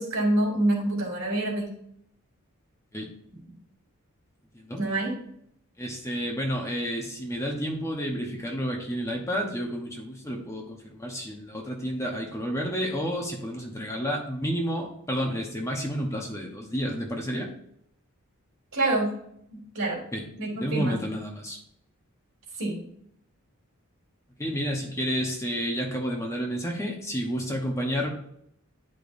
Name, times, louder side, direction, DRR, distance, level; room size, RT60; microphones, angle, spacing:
voice 1, 0.0-1.7 4.8-5.1 18.7-19.1 19.5-20.0 20.4-21.0 22.6-22.8, right 1 dB, 75° right, -2 dB, 3.0 m, -26 dB
voice 2, 5.8-17.5 20.1-20.2 20.5-21.6 24.4-28.1, equal, 15° left, 0 dB, 1.0 m, -30 dB
10.0 x 5.2 x 2.6 m, 0.71 s
head